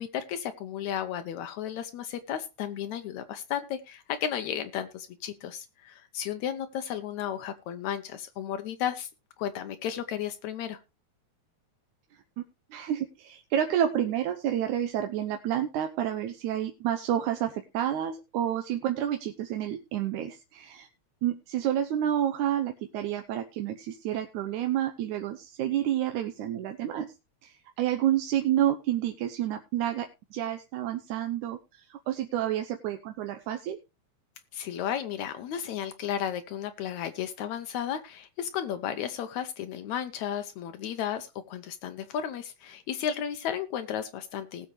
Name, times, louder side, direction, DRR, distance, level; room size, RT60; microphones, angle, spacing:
voice 1, 0.0-9.1 9.4-10.8 34.5-44.7, left 9 dB, 80° left, 9 dB, 2.2 m, -34 dB
voice 2, 12.7-20.9 21.2-27.1 27.4-33.8, right 11 dB, 90° right, 6 dB, 2.3 m, -29 dB
19.0 x 7.1 x 3.2 m, 0.26 s
omnidirectional pair, 3.3 m